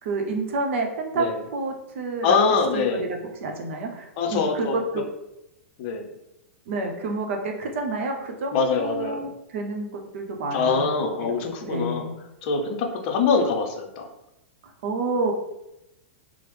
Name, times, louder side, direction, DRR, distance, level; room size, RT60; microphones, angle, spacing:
voice 1, 0.0-1.3 1.5-2.4 2.7-3.0 3.4-5.0 6.7-10.8 11.2-11.3 11.6-12.1 14.8-15.3, right 3 dB, 65° right, 3 dB, 0.6 m, -29 dB
voice 2, 2.2-3.1 4.2-4.8 5.8-6.1 8.5-9.3 10.5-12.1 12.4-14.1, left 4 dB, 50° left, 3 dB, 0.6 m, -24 dB
3.0 x 2.0 x 3.2 m, 0.88 s
hypercardioid pair, 110°, 7 cm